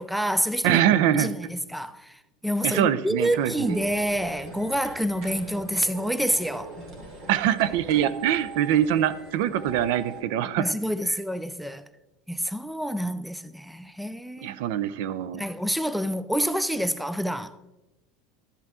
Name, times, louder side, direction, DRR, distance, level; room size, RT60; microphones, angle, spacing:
voice 1, 0.0-0.8 1.1-6.7 10.6-11.8 12.3-14.6 15.3-17.6, equal, ahead, 0.3 m, -28 dB
voice 2, 0.6-1.3 2.6-3.8 7.3-10.8 14.4-15.4, right 11 dB, 65° right, 0.6 m, -24 dB
sound 1, 3.2-10.2, right 3 dB, 40° right, 2.8 m, -42 dB
11.5 x 8.2 x 3.7 m
supercardioid pair, 150°, 0 cm